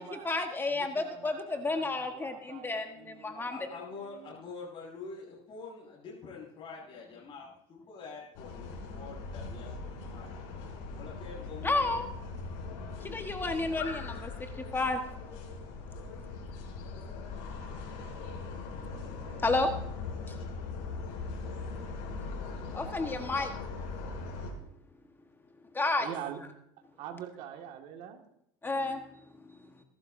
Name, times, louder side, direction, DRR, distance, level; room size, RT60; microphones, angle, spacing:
voice 1, 0.0-3.6 11.6-12.1 13.0-15.0 19.4-19.7 20.3-20.4 22.7-23.5 25.7-26.1 28.6-29.0, left 2 dB, 15° left, 5 dB, 1.3 m, -31 dB
voice 2, 0.7-4.4 26.0-26.4 27.0-28.2, right 9 dB, 60° right, 3 dB, 1.9 m, -45 dB
voice 3, 3.5-8.7 8.9-9.8 10.1-10.3 10.9-12.0, left 4 dB, 40° left, -6 dB, 6.0 m, -45 dB
sound 1, 8.3-24.5, left 4 dB, 70° left, 6.3 m, -40 dB
22.5 x 12.0 x 2.7 m, 0.76 s
supercardioid pair, 110°, 13 cm